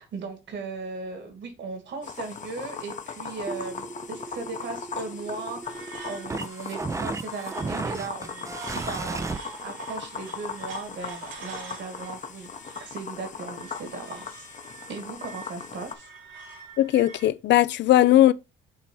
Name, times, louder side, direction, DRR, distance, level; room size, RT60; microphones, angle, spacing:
voice 1, 0.0-9.3 9.6-12.5 12.8-14.5 14.9-16.1, right 4 dB, 60° right, 2.2 m, -37 dB
sound 1, 2.0-15.9, left 6 dB, 35° left, 0.8 m, -39 dB
sound 2, 3.5-9.4, right 3 dB, 15° right, 0.4 m, -34 dB
sound 3, 5.6-17.3, right 4 dB, 80° right, 2.3 m, -45 dB
voice 2, 16.8-18.3, left 13 dB, 60° left, 0.4 m, -18 dB
7.2 x 2.9 x 4.5 m
cardioid pair, 95°, 21 cm